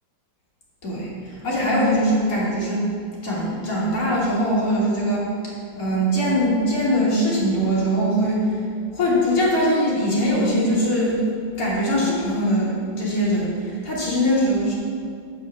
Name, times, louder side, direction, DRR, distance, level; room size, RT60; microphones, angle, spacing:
voice 1, 1.4-2.8 3.2-5.3 5.7-8.4 8.9-11.2 11.6-14.7, equal, 45° left, -7 dB, 2.5 m, -21 dB
7.0 x 4.9 x 6.9 m, 2.2 s
omnidirectional pair, 2.1 m